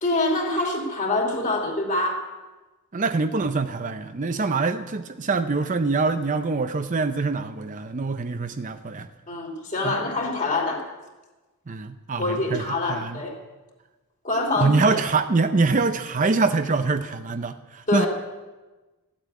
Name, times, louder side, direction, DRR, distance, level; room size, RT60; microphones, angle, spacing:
voice 1, 0.0-2.2 9.3-10.8 12.2-13.4 14.2-15.0 17.9-18.1, left 2 dB, 35° left, 1 dB, 2.9 m, -25 dB
voice 2, 2.9-9.1 9.8-10.0 11.7-13.2 14.6-18.1, right 3 dB, 35° right, 9 dB, 0.5 m, -24 dB
14.0 x 8.2 x 9.1 m, 1.2 s
head